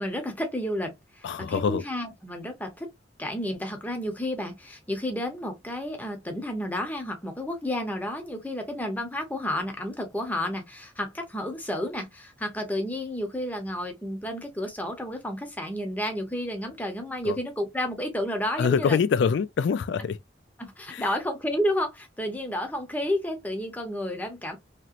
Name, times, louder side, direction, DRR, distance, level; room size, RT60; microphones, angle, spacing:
voice 1, 0.0-2.9 3.2-19.0 20.6-24.6, left 1 dB, 10° left, 0.7 m, -31 dB
voice 2, 1.2-1.8 17.2-17.4 18.6-20.2 20.9-21.1, left 6 dB, 70° left, 0.3 m, -24 dB
2.9 x 2.9 x 2.4 m
head